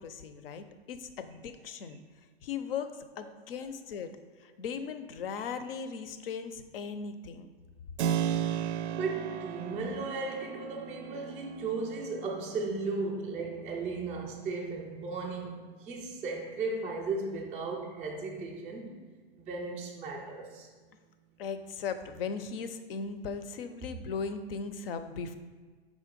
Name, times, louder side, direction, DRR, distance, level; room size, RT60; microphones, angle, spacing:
voice 1, 0.0-2.0 2.4-7.5 21.4-25.3, left 6 dB, 60° left, 10 dB, 0.6 m, -38 dB
Keyboard (musical), 8.0-16.5, right 9 dB, 85° right, 0.5 m, -37 dB
voice 2, 8.9-19.0 19.4-20.7, right 3 dB, 5° right, -6 dB, 0.3 m, -36 dB
5.4 x 3.7 x 5.1 m, 1.4 s
hypercardioid pair, 150°, 32 cm